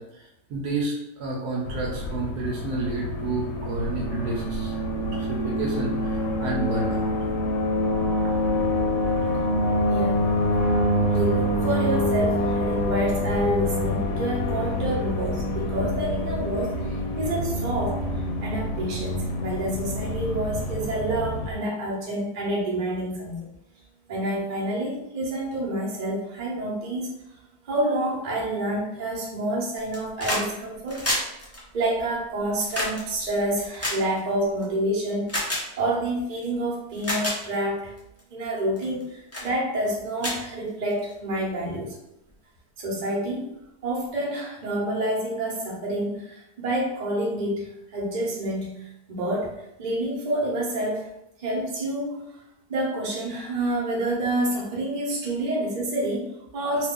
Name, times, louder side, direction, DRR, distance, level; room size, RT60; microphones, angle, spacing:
voice 1, 0.0-7.3, right 3 dB, 70° right, -2 dB, 1.1 m, -31 dB
sound 1, 1.6-21.5, left 1 dB, 85° left, 1.2 m, -26 dB
voice 2, 9.9-10.2 11.1-18.0 18.4-23.5 24.1-27.1 27.6-31.1 31.4-35.3 35.8-37.9 38.3-41.9 42.8-43.5 43.8-49.5 49.8-51.1 51.4-52.4 52.7-56.9, right 1 dB, 35° right, -4 dB, 0.7 m, -28 dB
sound 2, 29.8-30.5 30.8-34.6 35.3-35.6 36.4-36.5 36.9-37.4 38.0-38.2 38.8-39.0 39.3-39.5 39.9-40.0 40.2-41.1 42.3-42.4, left 1 dB, 20° left, 0.3 m, -29 dB
2.9 x 2.4 x 3.6 m, 0.86 s
omnidirectional pair, 1.9 m